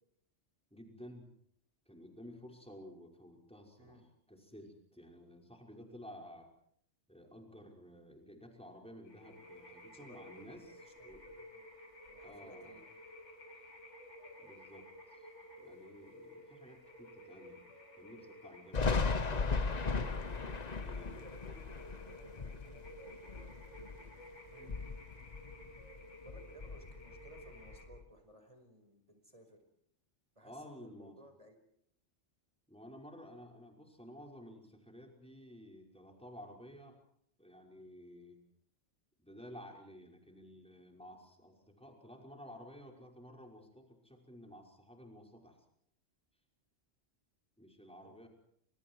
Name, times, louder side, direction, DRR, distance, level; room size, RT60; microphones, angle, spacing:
voice 1, 0.7-1.3 1.9-4.0 4.3-6.5 7.1-11.2 12.2-12.7 14.4-15.3 15.6-21.2 30.4-31.2 32.7-37.0 37.4-38.4 39.2-45.6 47.6-48.3, equal, 5° left, 0 dB, 5.5 m, -53 dB
sound 1, 9.0-27.8, equal, 75° left, 5.9 m, -54 dB
voice 2, 9.9-10.3 10.8-11.7 12.1-13.1 18.1-18.3 20.8-22.2 22.7-23.1 24.5-24.7 26.2-29.6 30.4-31.6 48.0-48.3, right 1 dB, 30° right, 6 dB, 5.2 m, -59 dB
Thunder, 18.7-24.2 24.5-26.0 26.3-28.0, left 4 dB, 35° left, 1.1 m, -37 dB
28.5 x 27.0 x 4.8 m, 0.69 s
omnidirectional pair, 1.2 m